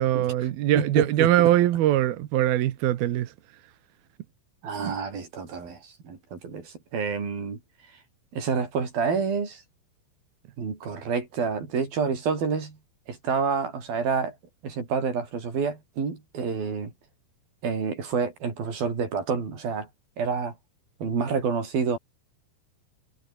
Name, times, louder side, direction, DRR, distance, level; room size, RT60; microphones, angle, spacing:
voice 1, 0.0-3.3 4.8-5.0, right 13 dB, 65° right, 2.7 m, -22 dB
voice 2, 0.8-1.5 4.6-7.6 8.3-9.6 10.6-12.8 13.1-14.4 14.6-16.9 17.6-19.9 20.2-20.5 21.0-22.0, right 5 dB, 50° right, 6.9 m, -28 dB
omnidirectional pair, 5.4 m